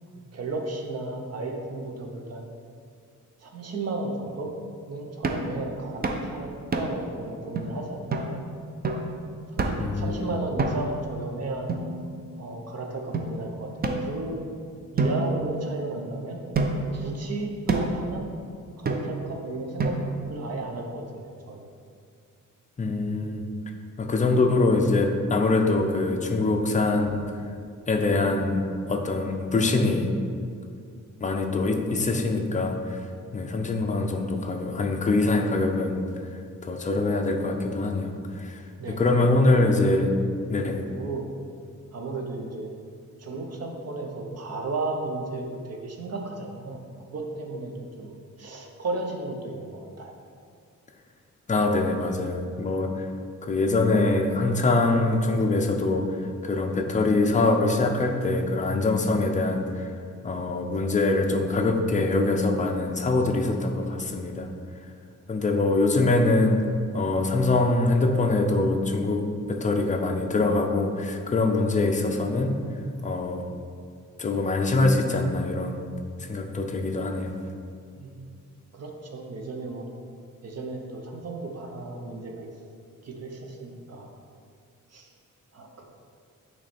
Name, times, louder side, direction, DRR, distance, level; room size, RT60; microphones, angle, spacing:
voice 1, 0.0-2.5 3.4-4.5 4.9-8.4 9.5-11.7 12.4-13.7 14.0-14.5 14.9-16.4 16.9-18.3 18.8-20.0 20.3-21.7 38.8-39.9 40.9-41.3 41.9-42.7 43.2-46.8 47.1-47.7 48.0-50.1 78.0-78.3 78.7-79.8 80.4-82.5 83.0-84.1 84.9-85.1 85.5-85.8, right 2 dB, 50° right, 1 dB, 0.8 m, -34 dB
sound 1, 5.2-5.5 6.0-6.3 6.7-7.1 7.5-7.6 8.1-8.3 8.8-9.1 9.6-9.9 10.6-11.0 11.7-12.4 13.1-13.3 13.8-14.5 15.0-16.0 16.5-17.0 17.7-18.0 18.8-19.3 19.8-20.3, right 3 dB, 30° right, 0.4 m, -28 dB
voice 2, 9.8-10.3 22.8-23.4 24.0-27.2 27.9-28.6 28.9-30.1 31.2-33.0 33.3-36.0 36.6-38.6 39.0-40.1 40.5-40.8 51.5-53.1 53.4-56.2 56.4-59.9 60.2-64.5 65.3-66.6 66.9-72.6 73.0-73.4 74.2-75.8 76.2-77.3, left 2 dB, 25° left, 3 dB, 0.5 m, -24 dB
9.0 x 3.2 x 4.2 m, 2.2 s
wide cardioid pair, 170°, 32 cm